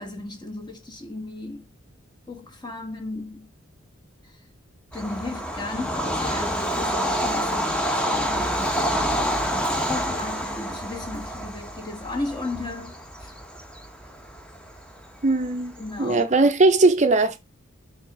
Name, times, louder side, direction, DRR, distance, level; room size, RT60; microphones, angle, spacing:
voice 1, 0.0-1.7 2.3-3.5 4.9-8.7 9.8-12.9 13.2-13.3 15.8-16.3, left 2 dB, 20° left, 1.2 m, -35 dB
Bird vocalization bird call bird song / Train, 4.9-16.1, equal, 5° left, 0.9 m, -28 dB
voice 2, 15.2-15.7 16.0-17.5, right 3 dB, 35° right, 0.6 m, -19 dB
5.3 x 3.9 x 4.7 m
head